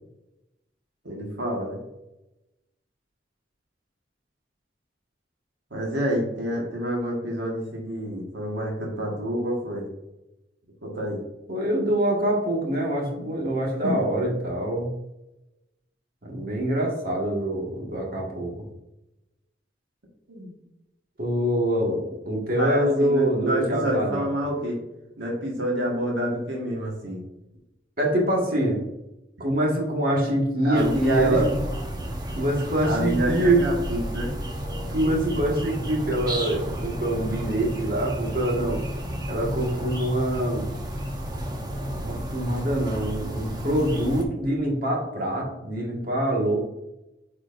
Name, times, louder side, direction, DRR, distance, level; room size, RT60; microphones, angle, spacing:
voice 1, 1.0-1.8 5.7-9.8 10.8-11.2 13.8-14.1 20.3-20.5 22.6-24.8 25.2-27.2 30.6-31.6 32.8-34.3, equal, 80° right, -2 dB, 1.6 m, -28 dB
voice 2, 11.5-14.9 16.2-18.5 21.2-24.3 28.0-28.8 29.4-31.5 32.3-33.6 34.9-38.8 39.3-40.7 42.0-46.6, right 1 dB, 55° right, -2 dB, 1.8 m, -25 dB
sound 1, 30.7-44.2, right 1 dB, 25° right, 0.9 m, -32 dB
8.5 x 4.8 x 2.6 m, 0.93 s
head